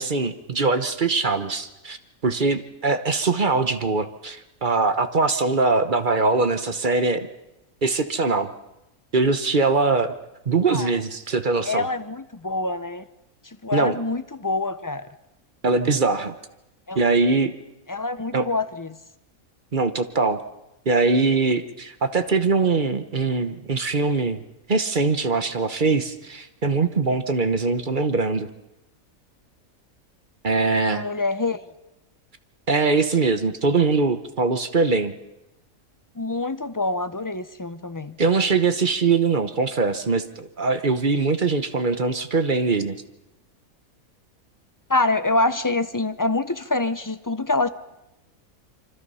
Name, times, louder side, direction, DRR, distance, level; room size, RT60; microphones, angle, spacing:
voice 1, 0.0-2.0 2.2-7.3 7.8-8.5 9.1-10.1 10.5-11.9 13.7-14.0 15.6-16.4 16.9-17.6 18.3-18.5 19.7-20.4 20.9-24.4 24.7-28.5 30.4-31.0 32.7-35.1 38.2-43.0, right 4 dB, 35° right, 10 dB, 1.1 m, -22 dB
voice 2, 11.7-13.0 13.6-15.0 16.9-17.0 17.9-18.9 30.9-31.6 36.2-38.2 44.9-47.7, left 2 dB, 25° left, 11 dB, 0.4 m, -25 dB
26.5 x 25.0 x 5.6 m, 0.93 s
omnidirectional pair, 1.5 m